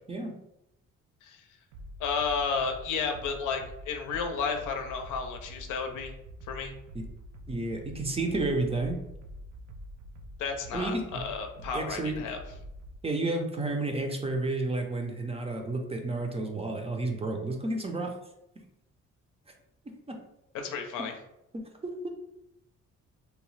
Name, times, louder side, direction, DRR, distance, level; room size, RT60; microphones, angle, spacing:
sound 1, 1.7-13.0, equal, 85° right, 0.5 m, -46 dB
voice 1, 2.0-6.1 6.5-6.7 10.4-12.4 20.5-21.1, left 5 dB, 80° left, 4 dB, 0.6 m, -32 dB
voice 2, 7.5-9.0 10.7-11.0 11.7-12.2 13.0-18.1 19.9-20.2 21.5-22.1, right 2 dB, 20° right, 3 dB, 0.5 m, -31 dB
2.8 x 2.1 x 3.1 m, 0.86 s
cardioid pair, 90°, 30 cm